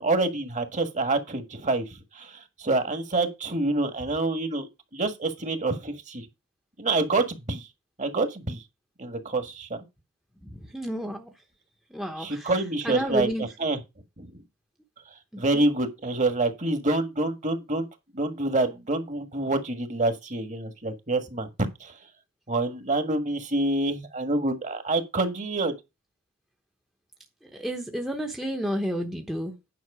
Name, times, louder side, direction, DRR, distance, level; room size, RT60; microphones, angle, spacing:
voice 1, 0.0-6.3 6.8-7.7 8.0-8.6 9.0-9.8 12.2-13.3 13.6-13.8 14.2-14.4 15.4-17.9 18.1-21.5 21.8-22.0 22.5-25.7, right 2 dB, 35° right, 1.6 m, -27 dB
voice 2, 10.4-11.3 11.9-12.5 12.8-13.5 15.3-15.7 27.4-29.7, equal, ahead, 1.0 m, -31 dB
9.6 x 5.8 x 4.9 m
head